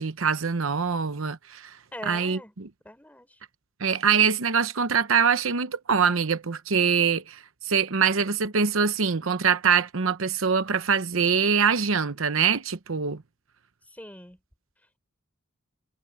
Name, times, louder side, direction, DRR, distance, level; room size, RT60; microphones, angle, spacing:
voice 1, 0.0-1.8 2.0-2.7 3.8-13.2, right 6 dB, 75° right, 0.9 m, -24 dB
voice 2, 1.9-2.5 2.8-3.4 13.8-14.4, left 1 dB, 10° left, 6.5 m, -43 dB
head